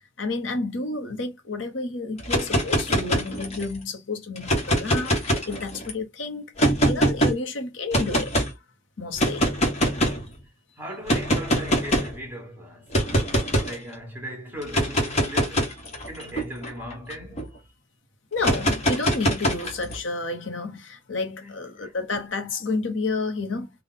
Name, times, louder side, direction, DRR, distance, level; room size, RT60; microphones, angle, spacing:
voice 1, 0.2-8.4 9.0-9.5 18.3-23.7, left 3 dB, 70° left, 1.0 m, -30 dB
sound 1, 2.2-3.7 4.4-5.9 6.6-7.3 7.9-8.5 9.2-10.3 11.1-12.2 12.9-13.8 14.6-17.4 18.4-20.0, equal, 35° left, 1.2 m, -23 dB
voice 2, 10.8-15.8 16.1-17.5 21.4-21.9, equal, 10° right, 1.4 m, -39 dB
3.6 x 2.4 x 4.0 m
head